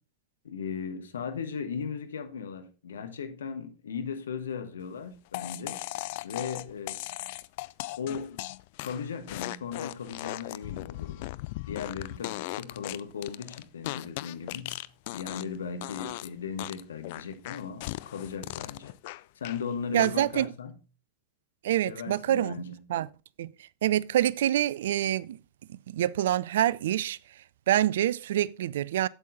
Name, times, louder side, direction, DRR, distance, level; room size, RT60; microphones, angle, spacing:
voice 1, 0.4-5.8 6.2-7.0 8.0-8.4 8.8-11.3 11.7-14.8 15.1-18.9 19.3-20.7 21.9-22.8, left 6 dB, 65° left, 1.2 m, -37 dB
sound 1, 5.3-15.6 15.8-16.3 16.6-19.6 20.0-20.4, left 20 dB, 50° left, 0.4 m, -38 dB
voice 2, 19.9-20.5 21.6-22.6 22.9-23.1 23.4-23.5 23.8-25.4 25.7-27.2 27.7-29.1, right 12 dB, 60° right, 0.3 m, -26 dB
8.2 x 8.0 x 3.9 m
figure-of-eight pair, 90°, 0 cm